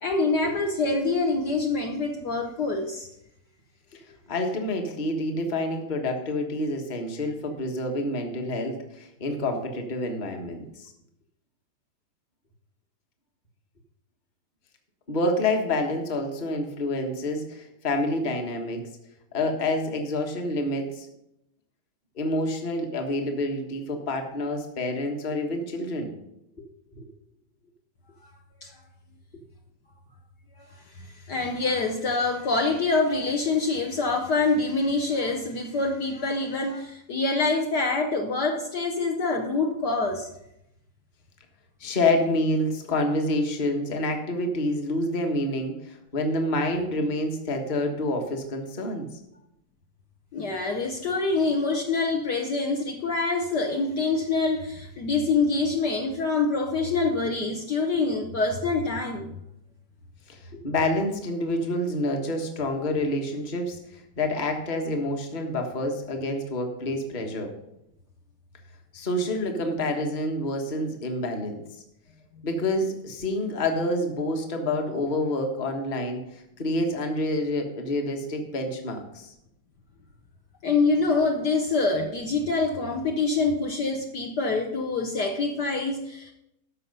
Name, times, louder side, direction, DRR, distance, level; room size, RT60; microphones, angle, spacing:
voice 1, 0.0-3.1 28.6-28.7 30.6-40.3 50.3-59.3 80.6-86.3, left 3 dB, 60° left, 2 dB, 1.3 m, -25 dB
voice 2, 3.9-10.9 15.1-18.8 19.3-21.1 22.2-26.1 26.6-26.7 27.0-27.1 41.8-49.1 60.3-67.5 68.9-71.6 72.4-79.3, left 1 dB, 25° left, 3 dB, 1.2 m, -28 dB
13.5 x 5.8 x 5.4 m, 0.83 s
omnidirectional pair, 2.4 m